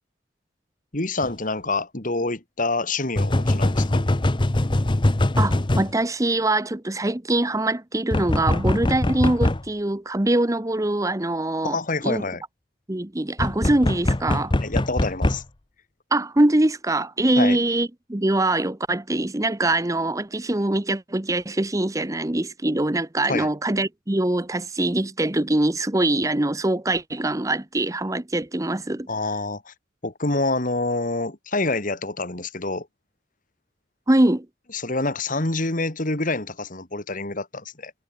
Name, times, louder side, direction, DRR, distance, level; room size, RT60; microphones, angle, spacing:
voice 1, 0.9-4.0 11.6-12.4 14.6-15.4 17.4-17.6 23.3-23.5 29.1-29.7 30.0-32.9 34.7-37.9, left 2 dB, 45° left, 2.4 m, -27 dB
sound 1, 1.2-1.3 3.2-5.9 8.1-9.6 13.4-15.4, left 1 dB, 25° left, 0.8 m, -22 dB
voice 2, 5.4-11.8 12.0-12.2 12.9-14.5 16.1-29.1 34.1-34.5, right 1 dB, 15° right, 0.9 m, -23 dB
head